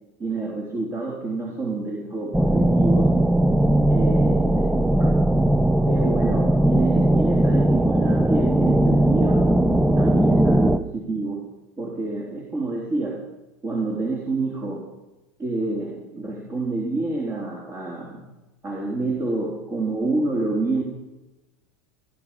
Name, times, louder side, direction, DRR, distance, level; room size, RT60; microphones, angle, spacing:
voice 1, 0.2-3.2 3.9-5.1 5.9-9.6 10.0-11.4 11.8-13.2 13.6-14.9 15.4-18.3 18.6-20.8, right 3 dB, 30° right, 0 dB, 3.5 m, -28 dB
sound 1, 2.3-10.8, right 1 dB, 5° right, 0.5 m, -19 dB
18.0 x 12.5 x 5.5 m, 1.0 s
hypercardioid pair, 105°, 9 cm